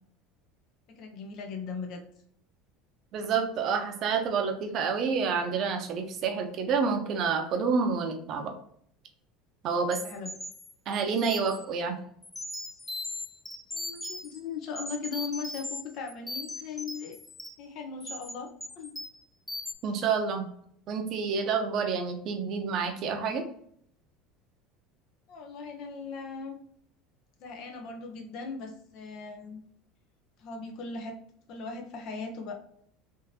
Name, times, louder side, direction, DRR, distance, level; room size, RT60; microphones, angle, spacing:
voice 1, 0.9-2.0 10.0-10.3 13.7-17.2 17.6-18.5 18.8-19.0 25.3-26.6 27.4-29.6 30.4-31.1 31.5-32.5, left 4 dB, 60° left, 3 dB, 0.9 m, -38 dB
voice 2, 3.1-8.5 9.6-10.0 10.9-12.0 19.8-20.4 20.9-23.4, right 5 dB, 50° right, 4 dB, 0.8 m, -28 dB
sound 1, 9.9-11.7 12.2-14.4 14.8-15.8 16.1-17.6 18.0-18.3 18.6-19.2 19.5-19.7, left 1 dB, 10° left, 0.6 m, -39 dB
3.6 x 2.8 x 2.8 m, 0.67 s
supercardioid pair, 100°, 0 cm